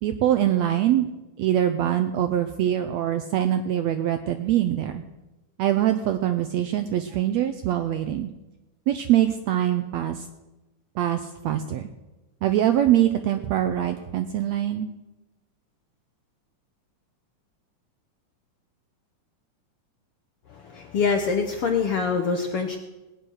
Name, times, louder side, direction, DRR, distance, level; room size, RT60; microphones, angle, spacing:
voice 1, 0.0-1.1 1.4-5.0 5.6-8.3 8.9-10.3 10.9-11.9 12.4-14.9, right 11 dB, 80° right, 8 dB, 1.6 m, -23 dB
voice 2, 20.5-22.8, left 5 dB, 70° left, 4 dB, 1.4 m, -25 dB
18.5 x 9.5 x 6.4 m, 1.0 s
omnidirectional pair, 3.8 m